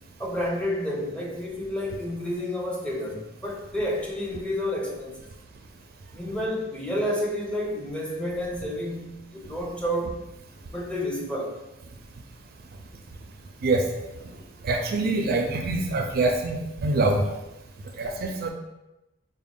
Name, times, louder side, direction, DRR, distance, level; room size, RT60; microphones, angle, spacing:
voice 1, 0.2-5.3 6.1-10.2 10.7-11.6, equal, 5° left, 0.6 m, -30 dB
voice 2, 14.6-17.2 18.0-18.5, right 2 dB, 50° right, 0.4 m, -24 dB
4.0 x 2.1 x 3.6 m
head